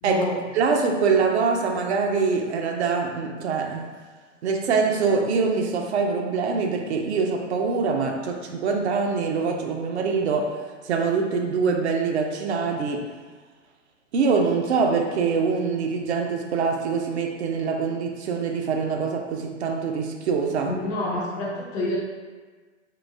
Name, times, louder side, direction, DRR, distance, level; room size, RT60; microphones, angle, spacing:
voice 1, 0.0-0.4 20.7-22.0, left 2 dB, 20° left, -3 dB, 0.4 m, -27 dB
voice 2, 0.5-3.9 4.4-13.1 14.1-20.7, right 5 dB, 60° right, 2 dB, 0.6 m, -24 dB
3.8 x 2.3 x 2.6 m, 1.4 s
figure-of-eight pair, 105°, 38 cm